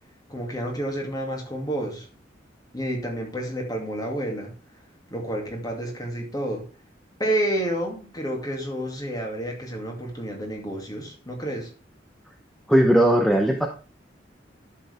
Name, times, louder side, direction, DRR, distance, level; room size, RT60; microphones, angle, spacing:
voice 1, 0.3-2.1 2.7-4.5 5.1-6.6 7.2-11.7, right 1 dB, 20° left, 1 dB, 2.6 m, -29 dB
voice 2, 12.7-13.7, right 1 dB, ahead, 3 dB, 0.8 m, -18 dB
11.5 x 6.8 x 3.5 m, 0.37 s
head